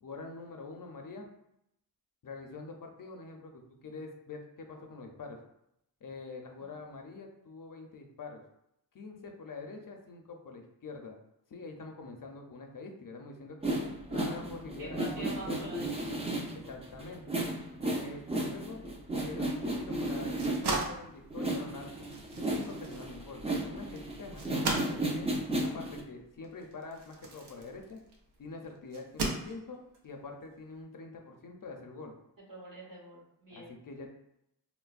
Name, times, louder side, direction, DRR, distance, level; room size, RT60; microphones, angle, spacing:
voice 1, 0.0-1.3 2.2-5.4 6.0-8.4 8.9-11.2 11.5-13.7 14.1-15.7 16.5-17.4 18.0-18.9 19.2-21.9 22.3-25.3 25.6-28.0 28.4-32.1 33.5-34.1, left 3 dB, 55° left, 3 dB, 0.5 m, -45 dB
sound 1, 13.6-20.9 21.3-26.0, right 1 dB, 15° right, 0.4 m, -34 dB
voice 2, 14.1-14.4 14.8-15.9 16.4-16.5 17.0-17.2 32.5-33.8, right 1 dB, 55° right, -4 dB, 1.2 m, -45 dB
sound 2, 20.3-28.3 28.9-30.0, right 2 dB, 80° right, 0.6 m, -38 dB
3.8 x 2.0 x 2.4 m, 0.79 s
wide cardioid pair, 90°, 40 cm